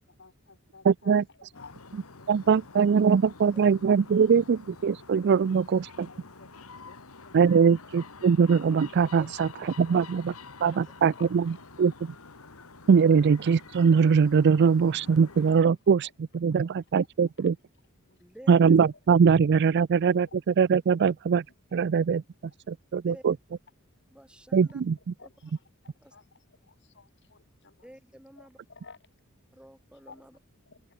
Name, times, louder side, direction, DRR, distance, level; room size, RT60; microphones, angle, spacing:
voice 1, 0.1-3.3 4.4-4.5 5.2-8.2 9.2-10.0 10.3-12.0 12.5-12.8 15.2-16.1 16.4-17.1 17.4-17.5 18.0-18.4 19.3-20.3 21.0-21.1 21.7-21.8 24.6-24.7 25.2-27.9 28.3-29.0 29.9-30.9, left 4 dB, 55° left, 4.1 m, -55 dB
voice 2, 0.9-1.2 2.3-6.1 7.3-9.5 9.8-10.2 10.6-11.4 11.8-11.9 12.9-16.1 16.3-17.6 18.5-20.3 20.6-21.4 21.7-22.2 22.7-23.3 24.5-25.1, right 6 dB, 55° right, 0.4 m, -22 dB
sound 1, 1.5-15.6, left 4 dB, 80° left, 2.1 m, -48 dB
voice 3, 18.2-18.8 23.0-23.2 24.1-24.8 26.0-26.1 27.8-28.6 29.5-30.4, equal, 5° right, 7.5 m, -50 dB
open air
head